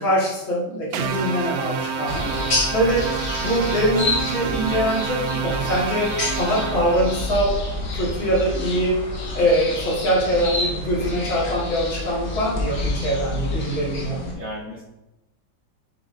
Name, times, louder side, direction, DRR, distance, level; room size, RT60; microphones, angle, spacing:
voice 1, 0.0-2.3 2.7-3.1 3.4-7.6 7.9-9.0 9.3-14.2, equal, 80° left, -5 dB, 3.0 m, -23 dB
sound 1, 0.9-7.4, right 6 dB, 75° right, 0.9 m, -29 dB
sound 2, 2.1-14.3, left 2 dB, 60° left, 2.2 m, -28 dB
voice 2, 13.8-14.8, equal, 40° right, -6 dB, 2.3 m, -37 dB
7.9 x 7.0 x 2.8 m, 0.96 s
omnidirectional pair, 2.1 m